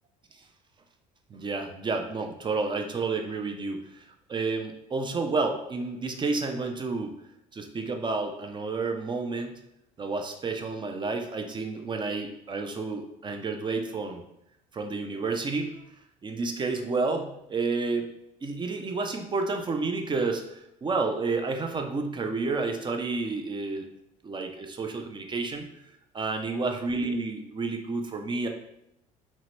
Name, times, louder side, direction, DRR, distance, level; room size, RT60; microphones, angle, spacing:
voice 1, 1.3-7.1 7.5-9.5 10.0-14.2 14.7-15.7 16.2-18.1 18.4-23.9 24.2-25.7 26.1-28.5, right 3 dB, 25° right, 5 dB, 0.4 m, -30 dB
2.8 x 2.2 x 2.9 m, 0.81 s
hypercardioid pair, 70°, 18 cm